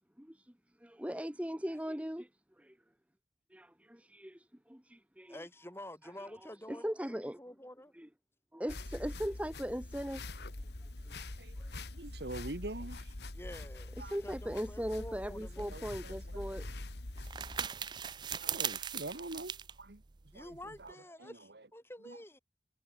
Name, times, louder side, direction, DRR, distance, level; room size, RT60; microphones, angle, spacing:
voice 1, 0.2-0.5 0.8-2.3 2.6-2.8 3.5-5.4 6.2-6.3 6.7-7.4 7.9-8.1 8.5-10.2 11.1-11.2 11.6-11.7 14.0-16.7, equal, 10° right, 1.3 m, -39 dB
voice 2, 5.3-7.9 13.3-14.0 14.2-15.9 20.3-22.4, left 1 dB, 15° left, 2.9 m, -49 dB
sound 1, 8.7-17.6, left 2 dB, 70° left, 1.7 m, -44 dB
voice 3, 11.2-11.6 11.9-13.1 14.0-14.2 15.3-16.6 18.4-20.0 20.3-21.7 22.0-22.2, right 2 dB, 70° right, 1.6 m, -45 dB
sound 2, 15.7-20.9, right 8 dB, 25° right, 0.4 m, -41 dB
head